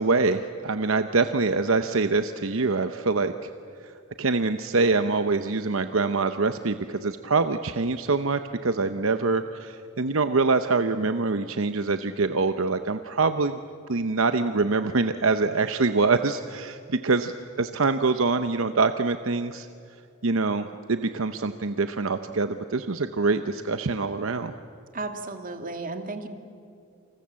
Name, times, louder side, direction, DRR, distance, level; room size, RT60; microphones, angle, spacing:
voice 1, 0.0-3.5 3.8-3.9 4.2-13.6 13.9-19.7 20.2-24.5, right 3 dB, 70° right, 9 dB, 0.9 m, -25 dB
voice 2, 24.9-26.3, right 3 dB, 40° right, 6 dB, 2.3 m, -34 dB
29.0 x 26.5 x 7.6 m, 2.5 s
head